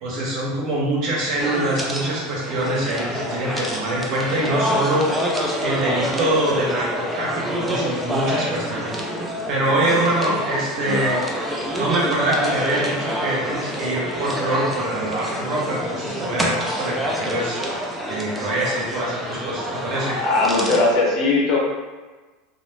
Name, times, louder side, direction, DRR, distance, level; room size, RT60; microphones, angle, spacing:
voice 1, 0.0-5.1 5.6-8.9 9.5-11.2 11.8-17.6 18.1-20.2, right 1 dB, 45° right, -4 dB, 0.8 m, -24 dB
sound 1, 1.4-20.9, equal, 5° right, 0.3 m, -27 dB
voice 2, 20.2-21.6, left 3 dB, 40° left, -4 dB, 0.7 m, -19 dB
2.4 x 2.0 x 3.1 m, 1.3 s
supercardioid pair, 145°, 0 cm